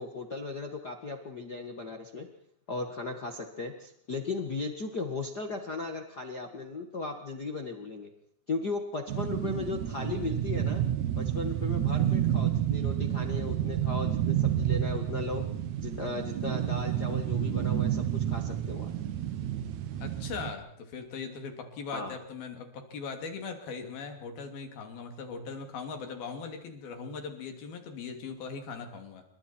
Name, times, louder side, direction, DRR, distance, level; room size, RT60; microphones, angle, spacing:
voice 1, 0.0-2.3 2.7-8.1 8.5-10.8 11.2-15.4 15.8-18.9 21.9-22.1, left 3 dB, 85° left, 3 dB, 0.8 m, -36 dB
sound 1, 9.1-20.5, right 11 dB, 70° right, 1.8 m, -30 dB
voice 2, 20.0-29.2, left 5 dB, 60° left, 5 dB, 4.6 m, -40 dB
28.5 x 24.0 x 4.5 m, 0.65 s
omnidirectional pair, 5.0 m